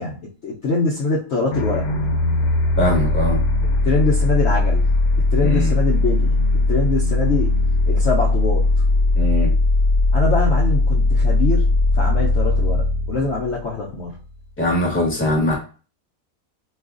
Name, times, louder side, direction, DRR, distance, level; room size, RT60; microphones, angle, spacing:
voice 1, 0.0-1.8 3.8-4.8 5.3-6.3 6.7-7.5 7.9-8.6 10.1-14.2, left 3 dB, 60° left, -4 dB, 0.9 m, -23 dB
sound 1, 1.5-14.2, left 2 dB, 90° left, 1.1 m, -19 dB
voice 2, 2.8-3.4 5.4-5.7 9.1-9.5 14.6-15.5, left 1 dB, 10° left, -3 dB, 1.0 m, -21 dB
4.6 x 2.4 x 2.4 m, 0.37 s
omnidirectional pair, 1.5 m